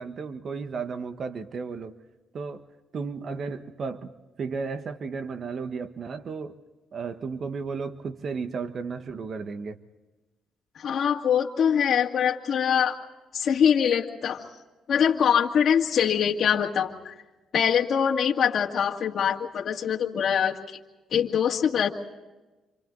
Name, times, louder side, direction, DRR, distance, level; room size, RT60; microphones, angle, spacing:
voice 1, 0.0-1.9 2.3-2.7 2.9-6.6 6.9-9.8, right 5 dB, 50° right, 9 dB, 1.4 m, -34 dB
voice 2, 10.8-13.0 13.3-14.4 14.9-17.1 17.5-20.8 21.1-21.9, left 8 dB, 60° left, -1 dB, 2.2 m, -23 dB
27.5 x 27.0 x 4.0 m, 1.1 s
cardioid pair, 90°, 0 cm